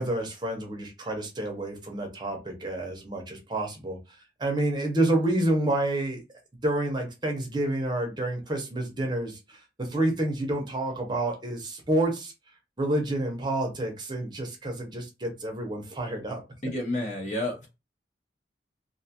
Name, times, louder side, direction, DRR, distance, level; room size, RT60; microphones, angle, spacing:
voice 1, 0.0-4.0 4.4-6.2 6.6-12.3 12.8-16.4, right 1 dB, 25° right, 2 dB, 0.7 m, -29 dB
voice 2, 16.6-17.7, left 1 dB, 45° left, 1 dB, 0.9 m, -30 dB
2.5 x 2.3 x 2.7 m, 0.25 s
head